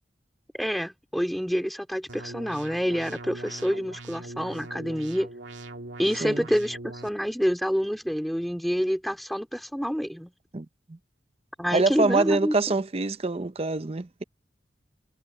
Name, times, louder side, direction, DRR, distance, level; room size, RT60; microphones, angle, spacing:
voice 1, 0.5-5.3 6.0-10.3 11.6-12.7, equal, ahead, 3.1 m, -27 dB
sound 1, 2.1-7.1, right 2 dB, 85° right, 2.3 m, -41 dB
voice 2, 10.5-11.0 11.7-14.2, right 3 dB, 35° right, 0.6 m, -25 dB
head